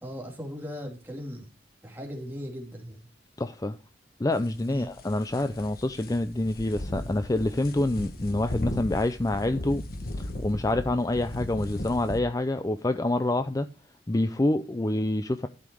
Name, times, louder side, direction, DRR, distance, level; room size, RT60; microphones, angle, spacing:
voice 1, 0.0-1.5 1.8-3.0 4.7-4.9, equal, 10° right, 2.7 m, -38 dB
voice 2, 3.4-3.8 4.2-9.8 10.2-13.7 14.1-15.5, left 2 dB, 20° left, 0.5 m, -27 dB
sound 1, 4.3-12.2, left 1 dB, 55° left, 1.4 m, -37 dB
12.0 x 5.7 x 4.7 m
head